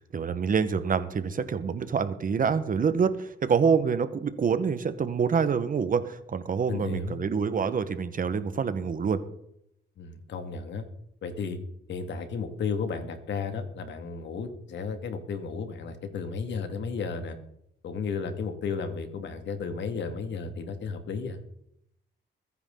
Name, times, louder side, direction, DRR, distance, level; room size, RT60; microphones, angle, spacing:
voice 1, 0.0-9.2, right 6 dB, 45° right, 11 dB, 1.4 m, -26 dB
voice 2, 6.7-7.2 10.0-10.8 11.2-11.6 11.9-17.4 17.8-21.4, left 5 dB, 65° left, 7 dB, 2.3 m, -33 dB
21.5 x 10.0 x 4.0 m, 0.75 s
cardioid pair, 90°, 20 cm